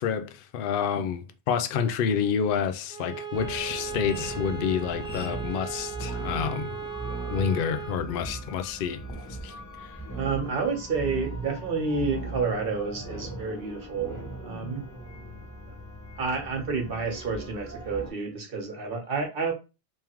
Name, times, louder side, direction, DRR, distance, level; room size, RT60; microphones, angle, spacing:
voice 1, 0.0-6.8 7.3-9.0 9.4-9.5 9.8-9.9, left 7 dB, 60° left, 0.6 m, -28 dB
Bowed string instrument, 2.9-8.1, right 7 dB, 40° left, 1.2 m, -37 dB
sound 1, 3.3-18.1, right 2 dB, 20° left, 0.7 m, -39 dB
voice 2, 10.2-14.8 16.2-19.5, right 4 dB, 55° right, 1.2 m, -30 dB
3.5 x 3.2 x 2.9 m
omnidirectional pair, 1.2 m